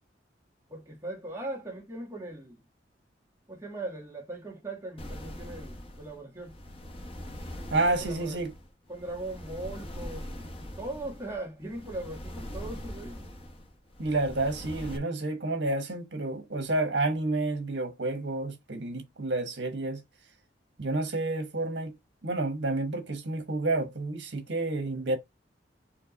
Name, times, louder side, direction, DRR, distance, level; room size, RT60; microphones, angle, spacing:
voice 1, 0.7-2.6 3.5-6.6 7.9-8.4 8.9-13.3 24.9-25.2, right 2 dB, 15° right, 1.6 m, -39 dB
sound 1, 5.0-15.0, left 1 dB, 30° left, 0.8 m, -42 dB
voice 2, 7.7-8.5 14.0-20.0 20.8-21.9 22.2-25.2, right 2 dB, 75° right, 1.3 m, -30 dB
4.4 x 2.8 x 4.0 m
head